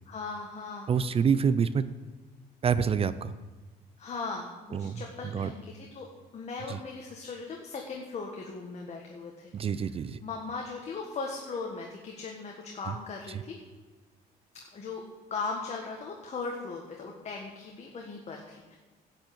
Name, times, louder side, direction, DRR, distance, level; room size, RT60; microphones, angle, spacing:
voice 1, 0.1-0.9 4.0-6.1 6.3-9.9 10.2-13.6 14.5-15.0 15.3-18.8, left 4 dB, 40° left, 0 dB, 1.6 m, -38 dB
voice 2, 0.9-1.8 2.6-3.3 4.7-5.5 6.7-6.8 9.5-10.2 12.9-13.0, right 6 dB, 35° right, 14 dB, 0.5 m, -27 dB
12.0 x 5.5 x 8.7 m, 1.2 s
cardioid pair, 110°, 17 cm